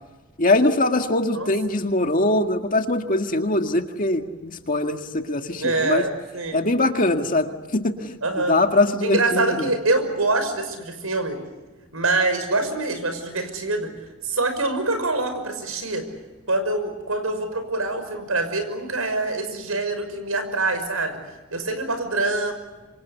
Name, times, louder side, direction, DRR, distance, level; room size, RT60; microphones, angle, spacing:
voice 1, 0.4-6.0 6.5-9.7, left 2 dB, 40° left, 5 dB, 1.9 m, -22 dB
voice 2, 5.6-6.7 8.2-8.6 9.0-11.4 11.9-13.9 14.2-16.1 16.5-21.2 21.5-22.5, right 2 dB, 85° right, 8 dB, 5.9 m, -25 dB
27.0 x 26.0 x 8.2 m, 1.2 s
head